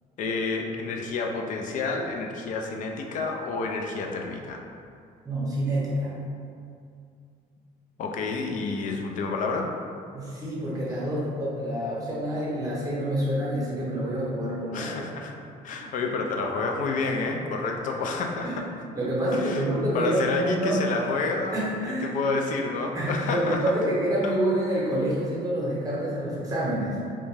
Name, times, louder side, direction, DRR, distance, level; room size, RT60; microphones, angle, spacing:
voice 1, 0.2-4.6 8.0-9.7 14.7-15.3 15.6-18.6 19.3-19.6 19.9-21.6 22.0-23.6 24.2-24.3, left 3 dB, 50° left, 2 dB, 0.4 m, -29 dB
voice 2, 5.2-6.2 10.1-15.1 18.4-18.6 18.9-20.8 21.5-22.1 22.9-27.0, right 1 dB, 20° right, -6 dB, 0.8 m, -27 dB
2.5 x 2.2 x 3.2 m, 2.3 s
cardioid pair, 110°, 17 cm